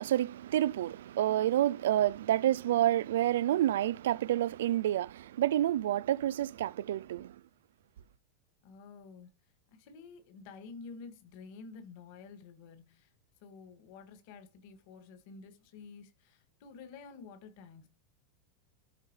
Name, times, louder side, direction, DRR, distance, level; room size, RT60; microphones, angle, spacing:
voice 1, 0.0-7.3, right 12 dB, 80° right, 0.3 m, -29 dB
voice 2, 8.6-9.3 9.7-13.1 13.4-17.9, left 5 dB, 40° left, 2.1 m, -50 dB
13.0 x 4.5 x 3.2 m
supercardioid pair, 180°, 0 cm